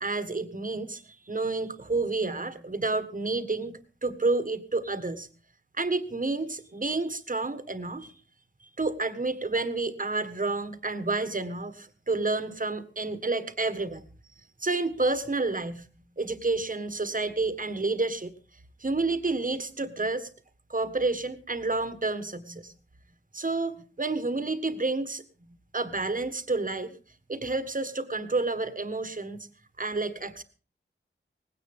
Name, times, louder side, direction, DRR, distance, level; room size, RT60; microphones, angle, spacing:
voice 1, 0.0-5.3 5.7-8.1 8.6-14.0 14.6-15.9 16.2-18.3 18.8-20.3 20.7-22.7 23.3-25.2 25.7-27.0 27.3-29.5 29.8-30.4, right 3 dB, 40° right, 11 dB, 1.5 m, -30 dB
19.0 x 16.5 x 3.6 m, 0.38 s
wide cardioid pair, 80°, 21 cm